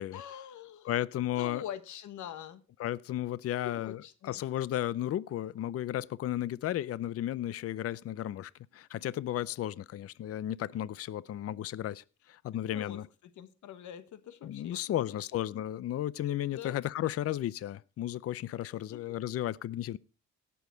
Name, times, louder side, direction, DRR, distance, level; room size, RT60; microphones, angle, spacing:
voice 1, 0.1-0.9 1.4-2.6 3.6-4.4 12.7-13.0 13.4-15.2 15.5-15.6 16.5-16.8 18.9-19.0, left 10 dB, 75° left, 1.2 m, -44 dB
voice 2, 0.8-1.6 2.8-13.1 14.4-20.0, left 12 dB, 50° left, 0.5 m, -34 dB
17.5 x 7.0 x 3.8 m
cardioid pair, 90°, 30 cm